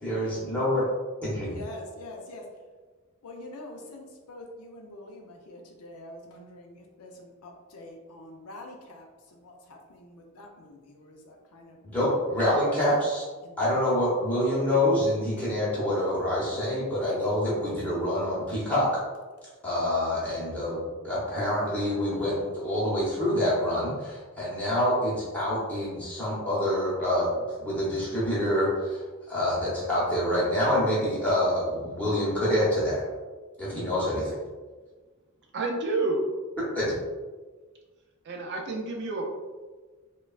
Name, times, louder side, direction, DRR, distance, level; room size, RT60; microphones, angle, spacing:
voice 1, 0.0-0.9 1.2-1.5 11.8-13.3 13.6-19.0 19.6-33.0 33.6-34.3 36.7-36.9, left 1 dB, 5° left, -9 dB, 0.8 m, -26 dB
voice 2, 1.5-2.5 3.2-12.2 13.4-13.9 14.7-15.0 21.5-22.6, left 1 dB, 85° left, 1 dB, 0.5 m, -46 dB
voice 3, 35.5-36.3 38.2-39.3, right 2 dB, 50° right, 1 dB, 0.4 m, -29 dB
3.2 x 2.2 x 2.3 m, 1.4 s
head